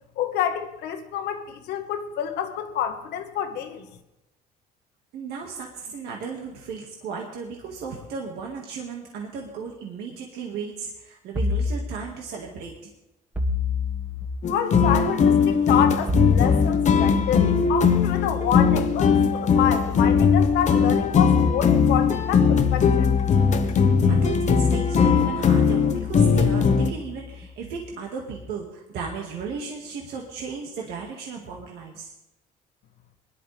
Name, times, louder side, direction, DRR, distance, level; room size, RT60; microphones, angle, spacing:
voice 1, 0.2-3.8 14.5-23.1, left 9 dB, 80° left, 6 dB, 1.5 m, -28 dB
voice 2, 5.1-12.9 24.1-32.1, right 5 dB, 75° right, 0 dB, 1.9 m, -35 dB
sound 1, 11.4-11.8 13.3-14.3 16.1-27.4, left 6 dB, 10° right, 1.6 m, -30 dB
sound 2, 14.4-26.9, left 6 dB, 45° left, 1.0 m, -20 dB
21.0 x 11.5 x 3.4 m, 0.93 s
cardioid pair, 110°, 17 cm